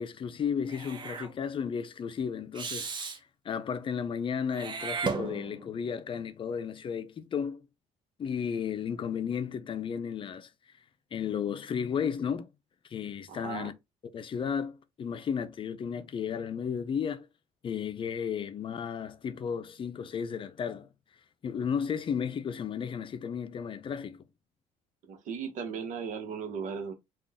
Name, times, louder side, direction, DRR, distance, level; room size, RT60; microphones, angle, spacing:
voice 1, 0.0-3.2 3.4-7.7 8.2-10.5 11.1-12.5 12.8-13.7 14.1-17.3 17.6-20.9 21.4-24.2, left 7 dB, 40° left, 0.5 m, -33 dB
Meow / Hiss, 0.7-1.3 2.5-3.2 4.5-5.7, right 5 dB, 35° right, 1.0 m, -35 dB
voice 2, 13.3-13.7 25.1-26.9, right 6 dB, 70° right, 1.1 m, -37 dB
3.8 x 2.4 x 3.6 m
cardioid pair, 105°, 14 cm